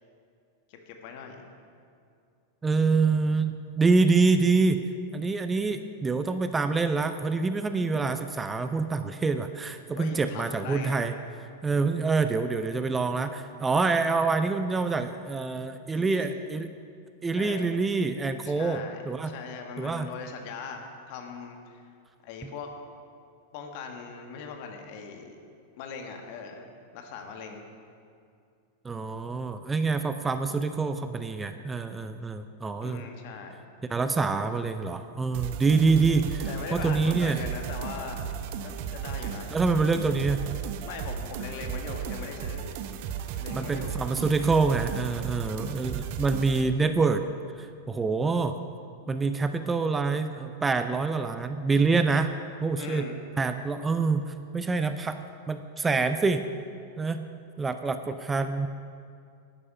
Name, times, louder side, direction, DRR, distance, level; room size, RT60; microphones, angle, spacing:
voice 1, 0.7-1.4 9.9-11.0 15.9-16.3 17.3-17.6 18.4-21.8 22.2-22.7 23.5-25.4 25.8-26.7 26.9-27.7 32.8-33.6 36.4-38.3 38.6-39.6 40.9-42.7 43.4-44.0 44.3-44.5 52.8-53.2, left 5 dB, 50° left, 3 dB, 1.6 m, -40 dB
voice 2, 2.6-4.8 5.1-11.1 11.6-16.7 17.2-19.3 19.8-20.1 28.8-33.0 33.9-37.4 39.5-40.4 43.5-47.2 47.6-48.6 49.1-52.3 52.6-53.1 53.4-56.4 57.0-57.2 57.6-58.7, right 4 dB, 15° right, 9 dB, 0.5 m, -26 dB
sound 1, 35.3-46.6, right 7 dB, 50° right, 0.8 m, -35 dB
11.5 x 9.9 x 5.5 m, 2.4 s
figure-of-eight pair, 90°, 0 cm